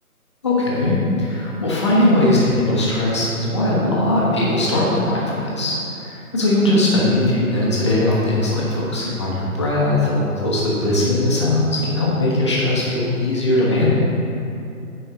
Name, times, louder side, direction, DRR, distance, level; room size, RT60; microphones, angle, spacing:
voice 1, 0.4-13.9, left 1 dB, 20° left, -6 dB, 1.0 m, -19 dB
9.0 x 4.4 x 5.1 m, 2.6 s
figure-of-eight pair, 165°, 45 cm